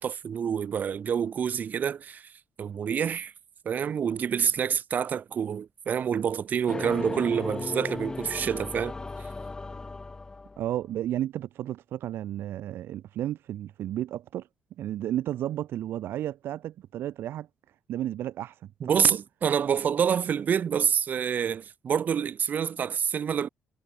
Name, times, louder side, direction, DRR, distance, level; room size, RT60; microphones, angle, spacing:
voice 1, 0.0-2.3 2.6-3.3 3.6-8.9 18.8-23.5, right 8 dB, 45° right, 1.1 m, -27 dB
sound 1, 6.7-10.8, left 3 dB, 20° left, 1.1 m, -36 dB
voice 2, 10.6-14.5 14.8-17.5 17.9-19.2, right 12 dB, 75° right, 0.4 m, -33 dB
cardioid pair, 135°, 4 cm